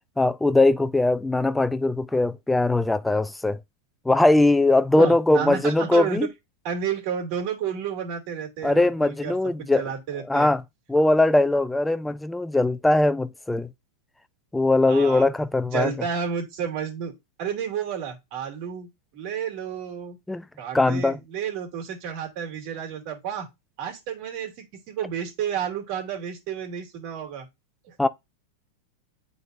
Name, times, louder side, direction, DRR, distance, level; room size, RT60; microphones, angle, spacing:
voice 1, 0.2-3.6 4.1-6.3 8.6-9.8 10.3-10.6 10.9-13.7 14.5-15.9 20.3-20.4 20.7-21.2 28.0-28.1, left 2 dB, 5° left, 0.5 m, -20 dB
voice 2, 5.0-6.3 6.6-10.5 14.8-15.3 15.7-17.1 17.4-20.2 20.6-23.5 23.8-27.5 27.9-28.1, right 7 dB, 55° right, 2.5 m, -31 dB
8.9 x 4.0 x 2.6 m
hypercardioid pair, 120°, 0 cm